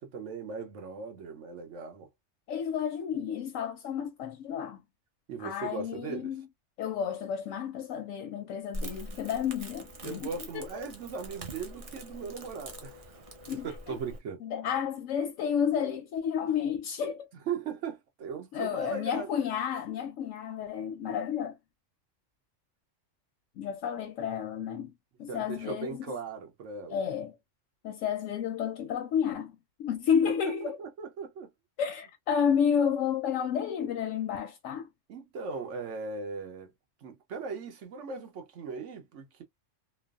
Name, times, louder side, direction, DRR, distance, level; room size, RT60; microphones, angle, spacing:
voice 1, 0.0-2.1 5.3-6.3 10.0-13.2 13.6-14.4 17.5-19.3 25.3-26.9 30.4-31.5 35.1-36.7 37.0-39.4, right 5 dB, 75° right, 1.1 m, -38 dB
voice 2, 2.5-4.8 5.4-6.5 6.8-10.7 13.5-14.0 14.4-17.3 18.5-21.6 23.6-24.9 25.2-26.2 26.9-27.4 27.8-30.8 31.8-34.9, left 8 dB, 85° left, 0.9 m, -31 dB
Crackle, 8.7-14.2, right 1 dB, 40° right, 0.5 m, -43 dB
3.1 x 2.0 x 2.3 m
omnidirectional pair, 1.3 m